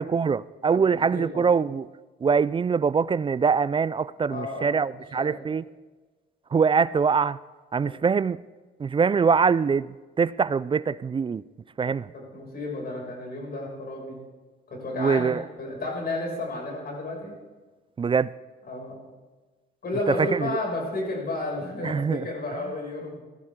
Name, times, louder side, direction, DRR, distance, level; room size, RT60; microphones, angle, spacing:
voice 1, 0.0-1.9 2.2-5.6 6.5-7.4 7.7-8.4 8.8-9.9 10.2-11.4 11.8-12.1 15.0-15.4 18.0-18.3 20.2-20.5 21.8-22.3, right 5 dB, 25° right, 0.3 m, -23 dB
voice 2, 0.9-1.5 4.3-4.8 5.2-5.4 7.8-7.9 12.1-14.2 14.7-17.3 18.7-19.0 19.8-23.2, left 2 dB, 50° left, 6.2 m, -32 dB
19.5 x 14.0 x 3.7 m
cardioid pair, 90°, 20 cm